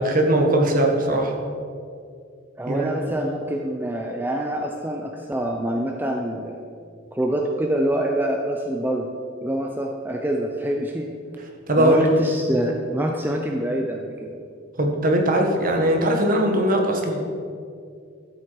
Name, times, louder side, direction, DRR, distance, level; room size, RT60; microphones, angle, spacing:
voice 1, 0.0-1.3 2.7-2.9 11.7-12.1 14.8-17.2, right 1 dB, 45° right, 2 dB, 1.4 m, -20 dB
voice 2, 2.6-6.6 7.1-9.1 9.4-11.1 11.8-14.3, right 1 dB, 10° right, 1 dB, 0.6 m, -26 dB
12.5 x 7.7 x 4.8 m, 2.3 s
head